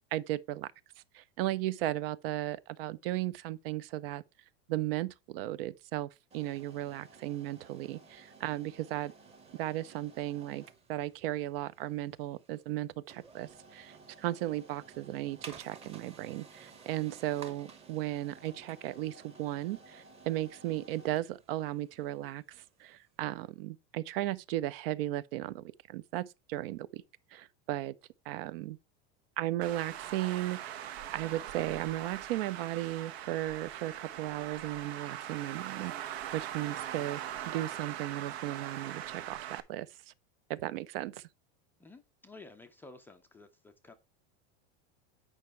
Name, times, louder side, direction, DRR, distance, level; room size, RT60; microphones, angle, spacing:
voice 1, 0.1-0.7 1.1-4.2 4.7-9.1 9.6-10.6 10.9-27.0 27.3-27.9 28.3-28.8 29.4-37.2 37.5-39.9 40.5-41.3, right 15 dB, 65° right, 0.7 m, -36 dB
sound 1, 6.3-23.2, right 4 dB, 20° right, 1.1 m, -55 dB
Traffic noise roadway noise, 29.6-39.6, right 11 dB, 80° right, 1.2 m, -41 dB
voice 2, 41.8-43.9, left 3 dB, 5° left, 0.4 m, -53 dB
9.0 x 5.4 x 4.5 m
supercardioid pair, 170°, 31 cm